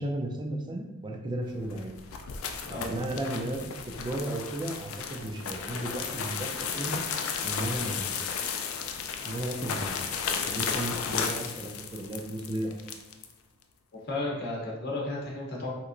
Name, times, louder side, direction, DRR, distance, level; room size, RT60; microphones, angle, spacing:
voice 1, 0.0-2.0 2.6-7.0 7.4-8.1 9.2-9.9 10.5-12.8, right 1 dB, 20° right, 2 dB, 0.4 m, -34 dB
sound 1, 1.6-13.3, left 6 dB, 90° left, 0.4 m, -34 dB
voice 2, 14.1-15.7, left 2 dB, 50° left, -3 dB, 0.8 m, -33 dB
3.3 x 3.0 x 2.5 m, 1.0 s
head